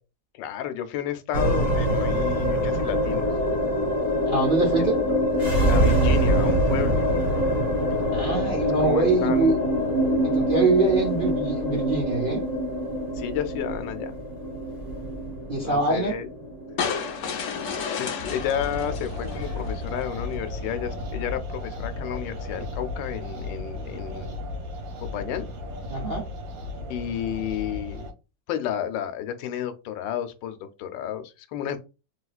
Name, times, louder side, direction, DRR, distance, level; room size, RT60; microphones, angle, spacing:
voice 1, 0.3-3.2 4.8-7.0 8.8-9.7 13.1-14.1 15.6-16.3 18.0-24.3 25.1-25.5 26.9-28.1 28.5-31.8, left 10 dB, 85° left, 1.3 m, -32 dB
sound 1, 1.3-19.8, equal, 35° right, 1.0 m, -25 dB
voice 2, 4.2-5.0 8.1-9.6 10.2-12.5 15.5-16.1 25.9-26.3, right 3 dB, 70° right, 0.5 m, -24 dB
sound 2, 16.8-20.0, left 6 dB, 70° left, 0.7 m, -32 dB
sound 3, 18.2-28.1, left 2 dB, 85° right, 1.3 m, -34 dB
3.3 x 2.8 x 2.4 m
omnidirectional pair, 2.0 m